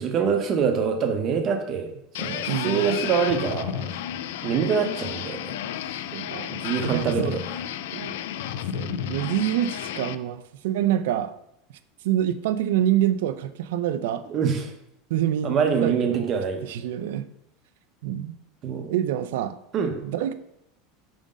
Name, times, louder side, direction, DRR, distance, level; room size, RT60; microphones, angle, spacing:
voice 1, 0.0-1.9 2.2-4.0 4.4-5.5 5.8-6.0 6.5-7.4 14.3-14.7 15.4-16.6 18.6-18.9 19.7-19.9, right 6 dB, 30° right, 5 dB, 0.7 m, -25 dB
sound 1, 2.1-10.2, left 10 dB, 75° left, 0.3 m, -32 dB
voice 2, 2.2-3.0 6.1-6.5 6.8-7.4 7.9-8.2 8.7-11.4 12.0-14.3 15.1-16.3 16.6-17.3 18.0-18.3 18.9-19.6 20.0-20.3, right 11 dB, 75° right, 12 dB, 0.4 m, -26 dB
5.1 x 3.7 x 5.1 m, 0.79 s
supercardioid pair, 170°, 0 cm